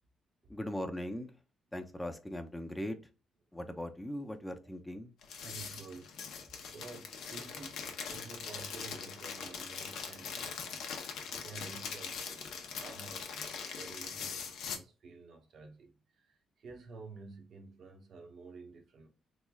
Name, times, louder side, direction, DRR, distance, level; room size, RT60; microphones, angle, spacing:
voice 1, 0.5-1.3 1.7-3.0 3.5-5.1, left 1 dB, 10° left, 0.5 m, -39 dB
sound 1, 5.2-14.8, left 6 dB, 80° left, 0.7 m, -42 dB
voice 2, 5.4-6.2 6.7-10.8 11.3-19.1, right 4 dB, 60° right, 0.7 m, -51 dB
3.5 x 3.1 x 2.3 m
cardioid pair, 90°, 0 cm